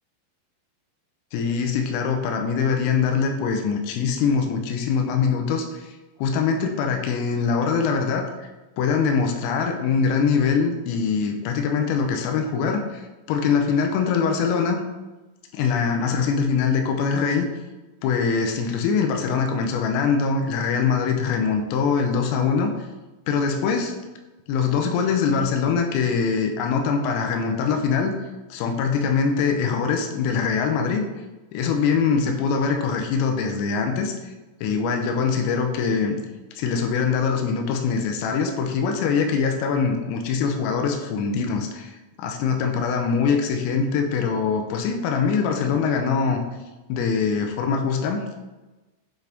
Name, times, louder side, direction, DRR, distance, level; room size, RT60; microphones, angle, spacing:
voice 1, 1.3-5.9 6.2-8.5 8.8-14.8 15.5-17.5 18.0-22.7 23.3-23.9 24.5-28.2 28.5-31.0 31.5-34.3 34.6-36.2 36.6-41.9 42.2-46.4 46.9-48.4, left 5 dB, 90° left, 4 dB, 3.4 m, -23 dB
9.9 x 3.5 x 3.9 m, 1.1 s
omnidirectional pair, 5.9 m